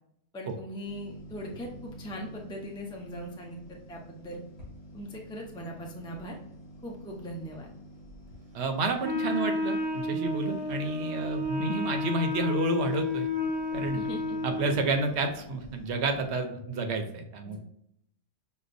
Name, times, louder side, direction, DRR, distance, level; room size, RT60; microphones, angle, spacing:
voice 1, 0.3-4.4 4.9-6.4 6.8-7.7 13.9-14.4 17.4-17.6, equal, 5° left, 0 dB, 0.4 m, -40 dB
sound 1, 0.8-16.3, equal, 55° left, 2.0 m, -48 dB
voice 2, 8.5-13.3 13.7-14.0 14.4-17.6, right 3 dB, 65° right, 5 dB, 0.8 m, -30 dB
Wind instrument woodwind instrument, 9.0-14.9, left 2 dB, 85° right, 1.1 m, -31 dB
6.2 x 2.2 x 2.5 m, 0.75 s
omnidirectional pair, 1.3 m